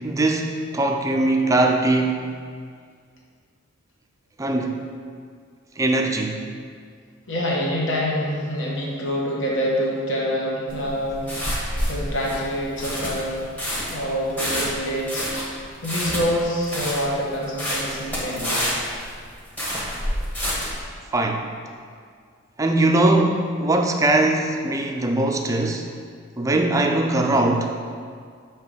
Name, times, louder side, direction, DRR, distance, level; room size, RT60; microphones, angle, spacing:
voice 1, 0.0-2.2 4.4-4.8 5.8-6.4 21.1-21.5 22.6-25.9 26.4-27.7, right 2 dB, 15° right, 3 dB, 0.4 m, -21 dB
voice 2, 7.3-11.3 11.9-13.5 13.9-18.7, equal, 65° left, -4 dB, 1.2 m, -26 dB
sound 1, 10.7-20.8, equal, 10° left, 1.1 m, -28 dB
6.6 x 2.9 x 5.1 m, 2.1 s
head